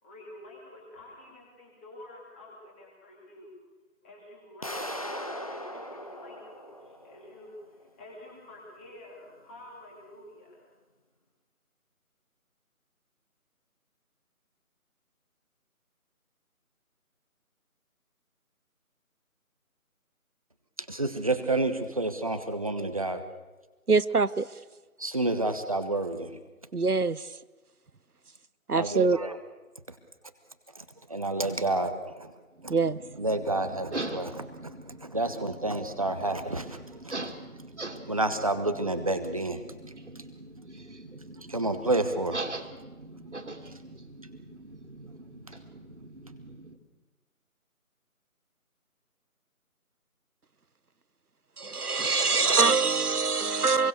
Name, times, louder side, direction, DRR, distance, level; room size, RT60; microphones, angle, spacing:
voice 1, 0.0-3.5 4.0-10.7, left 1 dB, 10° left, 2.9 m, -49 dB
sound 1, 4.6-7.5, equal, 25° left, 1.2 m, -39 dB
voice 2, 20.9-23.2 25.0-26.4 28.7-29.4 30.8-32.3 33.2-34.7 35.0-36.8 37.0-37.2 38.1-39.6 41.5-42.4, right 2 dB, 25° right, 1.3 m, -29 dB
voice 3, 23.9-24.5 26.7-27.3 28.7-29.2 32.7-33.0 51.6-53.9, right 4 dB, 85° right, 1.2 m, -24 dB
sound 2, 32.5-46.8, right 2 dB, 50° right, 2.9 m, -42 dB
27.5 x 22.5 x 6.8 m
figure-of-eight pair, 165°, 44 cm